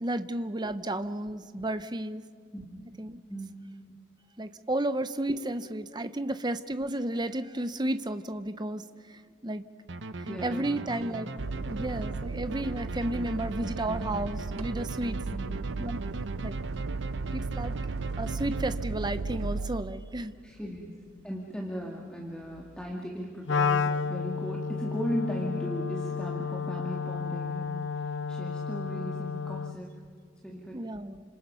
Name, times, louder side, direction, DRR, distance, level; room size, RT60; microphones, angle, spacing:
voice 1, 0.0-2.2 3.0-3.2 4.4-9.7 10.2-11.3 11.6-15.2 15.8-16.0 16.4-16.6 17.3-17.7 18.2-20.3 30.7-31.2, right 1 dB, 20° right, 11 dB, 0.8 m, -32 dB
voice 2, 3.3-3.6 10.3-10.8 15.3-15.6 20.4-20.9 21.2-29.9 30.4-30.8, equal, 5° left, -2 dB, 2.1 m, -37 dB
sound 1, 9.9-19.2, right 2 dB, 55° right, 0.9 m, -40 dB
sound 2, 11.4-20.5 22.5-22.9, right 4 dB, 90° right, 0.6 m, -35 dB
Wind instrument woodwind instrument, 23.5-29.8, left 5 dB, 55° left, 0.5 m, -31 dB
29.5 x 26.5 x 5.6 m, 2.2 s
head